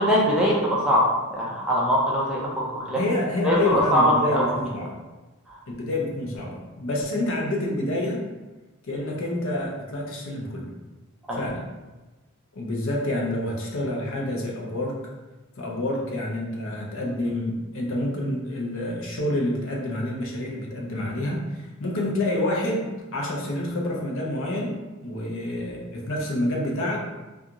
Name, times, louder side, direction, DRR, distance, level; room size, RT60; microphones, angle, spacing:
voice 1, 0.0-2.4 2.7-3.0 3.4-4.5 5.5-5.6 11.3-11.4, equal, 5° right, -6 dB, 0.5 m, -22 dB
voice 2, 2.9-4.9 5.7-8.2 8.8-10.7 11.3-11.6 12.5-15.0 15.6-27.0, left 1 dB, 60° left, -2 dB, 0.6 m, -28 dB
2.4 x 2.3 x 2.8 m, 1.1 s
head